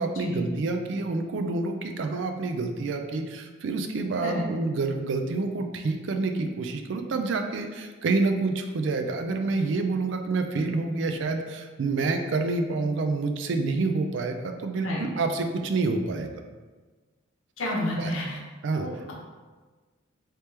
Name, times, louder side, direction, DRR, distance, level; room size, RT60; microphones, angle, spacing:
voice 1, 0.0-16.3 18.0-18.1 18.6-18.9, right 3 dB, 60° right, 6 dB, 0.4 m, -28 dB
voice 2, 17.6-18.4 18.7-19.1, left 1 dB, 75° left, -3 dB, 0.8 m, -30 dB
3.3 x 2.9 x 3.2 m, 1.3 s
head